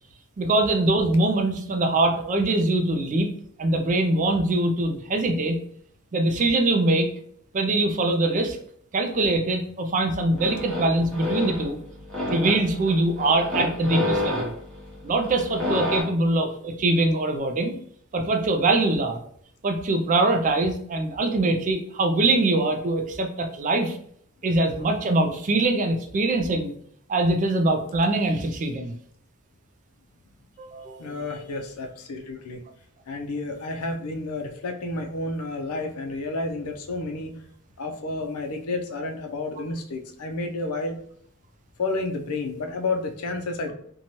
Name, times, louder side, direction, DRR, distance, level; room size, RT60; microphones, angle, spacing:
voice 1, 0.4-3.3 3.6-5.6 6.1-7.1 7.5-8.6 8.9-11.8 12.3-14.5 15.0-17.8 18.1-19.2 19.6-24.0 24.4-26.7 27.1-28.9 30.6-31.1, right 2 dB, 35° right, 5 dB, 0.3 m, -23 dB
sound 1, 10.1-16.0, left 1 dB, 5° left, 0.9 m, -30 dB
voice 2, 31.0-32.6 33.1-37.4 37.8-41.0 41.8-43.7, left 2 dB, 85° left, 5 dB, 0.5 m, -30 dB
2.7 x 2.2 x 3.0 m, 0.64 s
head